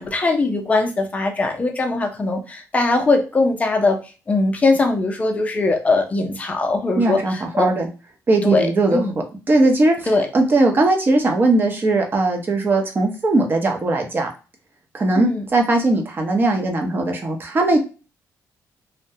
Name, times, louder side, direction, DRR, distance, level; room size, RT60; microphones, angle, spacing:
voice 1, 0.0-4.0 4.3-7.7 8.4-9.1 10.1-10.3 15.2-15.4, left 3 dB, 20° left, 3 dB, 0.5 m, -20 dB
voice 2, 7.0-7.9 8.3-9.0 9.5-14.3 14.9-17.8, right 2 dB, 30° right, 3 dB, 0.6 m, -19 dB
2.3 x 2.1 x 2.7 m, 0.33 s
cardioid pair, 120°, 6 cm